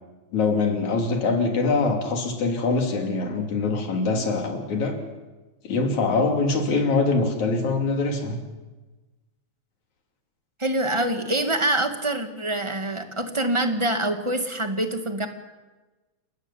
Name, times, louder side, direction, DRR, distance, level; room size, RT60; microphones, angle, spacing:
voice 1, 0.3-5.0 5.6-8.4, left 3 dB, 75° left, 3 dB, 4.4 m, -23 dB
voice 2, 10.6-15.3, right 1 dB, 10° right, 6 dB, 1.5 m, -25 dB
29.5 x 14.0 x 9.9 m, 1.2 s
omnidirectional pair, 3.3 m